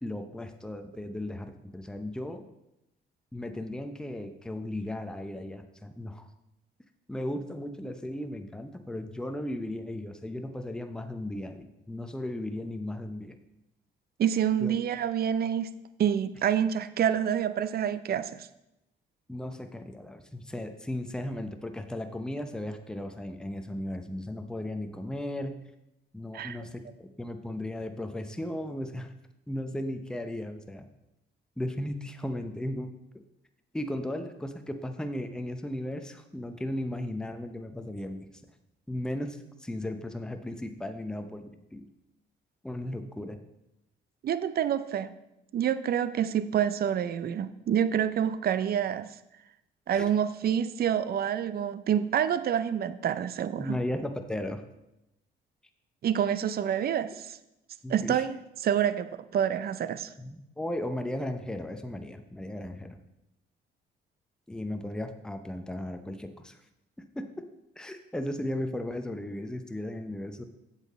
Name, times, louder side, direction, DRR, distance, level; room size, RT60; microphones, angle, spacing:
voice 1, 0.0-2.4 3.3-6.2 7.1-13.4 14.6-14.8 19.3-25.6 26.1-29.1 29.5-30.8 31.6-32.9 33.7-38.3 38.9-41.9 42.6-43.4 49.9-50.0 53.6-54.6 57.8-58.2 60.2-63.0 64.5-66.6 67.1-67.2 67.8-70.4, left 1 dB, 5° left, 0.7 m, -36 dB
voice 2, 14.2-15.7 16.0-18.5 26.3-26.6 44.2-45.2 45.5-49.1 49.9-53.8 56.0-57.4 57.9-60.1, right 9 dB, 50° right, 0.5 m, -27 dB
7.7 x 7.4 x 4.2 m
cardioid pair, 90°, 20 cm